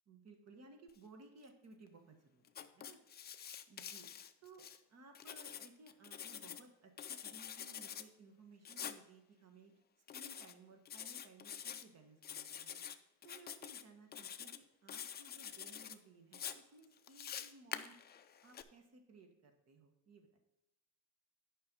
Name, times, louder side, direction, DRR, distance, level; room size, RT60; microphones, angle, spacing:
voice 1, 0.1-3.0 3.7-4.1 4.4-4.6 4.9-9.8 10.1-18.0 18.4-20.4, right 3 dB, 45° right, 4 dB, 1.6 m, -60 dB
Writing, 2.5-4.8 5.2-6.6 7.0-8.1 8.7-9.0 10.1-10.5 10.9-11.8 12.2-13.0 13.2-13.8 14.1-14.6 14.9-16.0 16.3-18.6, left 9 dB, 25° left, 0.4 m, -47 dB
10.0 x 5.5 x 5.3 m, 0.87 s
cardioid pair, 145°, 37 cm